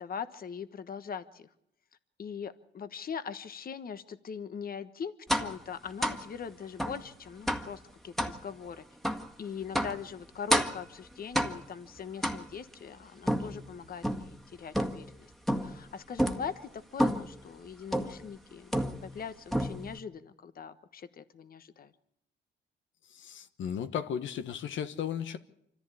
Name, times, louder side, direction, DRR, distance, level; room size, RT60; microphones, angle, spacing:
voice 1, 0.0-1.5 2.2-8.8 9.4-15.3 15.6-21.9, left 7 dB, 45° left, 11 dB, 1.3 m, -41 dB
sound 1, 5.3-5.6 6.0-6.3 6.8-7.0 7.5-7.7 8.2-8.4 9.0-9.3 9.7-10.0 10.5-10.9 11.3-11.8 12.2-12.7 13.3-14.3 14.7-15.1 15.5-15.8 16.2-16.5 17.0-17.3 17.9-18.2 18.7-19.2 19.5-20.0, equal, ahead, 1.8 m, -30 dB
voice 2, 23.1-25.4, left 8 dB, 75° left, 9 dB, 1.2 m, -35 dB
25.5 x 14.5 x 8.5 m, 0.77 s
cardioid pair, 90°, 20 cm